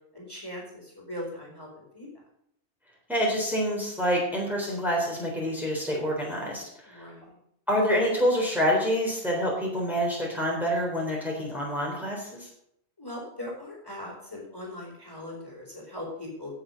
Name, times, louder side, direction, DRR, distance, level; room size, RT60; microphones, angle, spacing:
voice 1, 0.1-2.1 6.8-7.4 13.0-16.6, left 1 dB, 15° left, -3 dB, 4.0 m, -40 dB
voice 2, 3.1-7.1 7.7-12.5, equal, ahead, -3 dB, 3.7 m, -27 dB
17.0 x 7.0 x 5.3 m, 0.73 s
omnidirectional pair, 1.3 m